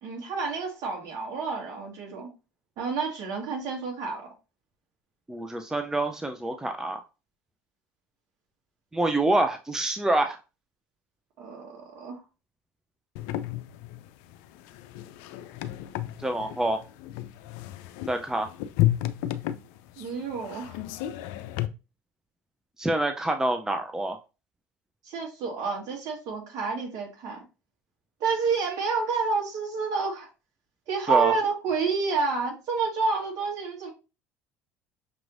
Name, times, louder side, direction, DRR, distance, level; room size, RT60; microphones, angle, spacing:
voice 1, 0.0-2.3 2.8-4.3 11.4-12.2 20.0-20.8 25.0-27.4 28.2-30.3 30.9-33.9, right 5 dB, 60° right, 1.9 m, -29 dB
voice 2, 5.3-7.0 8.9-10.4 16.2-16.8 18.1-18.5 22.8-24.2 31.1-31.3, right 1 dB, 10° right, 0.5 m, -26 dB
sound 1, 13.2-21.7, left 14 dB, 70° left, 0.4 m, -32 dB
5.9 x 3.0 x 2.6 m
hypercardioid pair, 75°, 7 cm